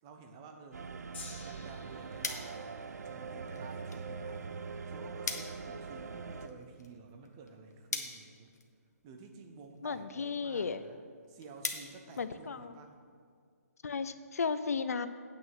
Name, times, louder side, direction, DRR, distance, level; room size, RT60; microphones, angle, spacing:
voice 1, 0.0-0.9 1.4-2.8 3.0-4.5 4.9-8.5 9.0-11.0 11.3-13.0, right 4 dB, 15° right, 5 dB, 0.5 m, -51 dB
sound 1, 0.7-6.5, right 5 dB, 80° right, 0.6 m, -43 dB
Gong, 1.1-7.5 8.3-8.4, left 4 dB, 40° left, 1.6 m, -55 dB
sound 2, 2.2-13.0, left 4 dB, 85° left, 1.2 m, -45 dB
voice 2, 9.8-10.8 12.2-12.7 13.8-15.1, left 5 dB, 65° left, 12 dB, 0.6 m, -34 dB
8.8 x 6.2 x 6.4 m, 2.1 s
hypercardioid pair, 170°, 9 cm